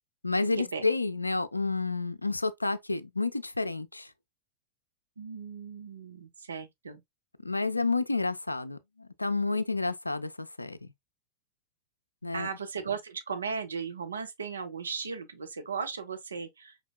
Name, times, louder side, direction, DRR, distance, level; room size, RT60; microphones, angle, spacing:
voice 1, 0.2-4.1 7.4-10.9 12.2-12.5, left 3 dB, 85° left, 0.3 m, -30 dB
voice 2, 5.2-7.0 12.3-16.9, right 5 dB, 70° right, 0.6 m, -36 dB
5.0 x 3.6 x 2.2 m
figure-of-eight pair, 90°, 0 cm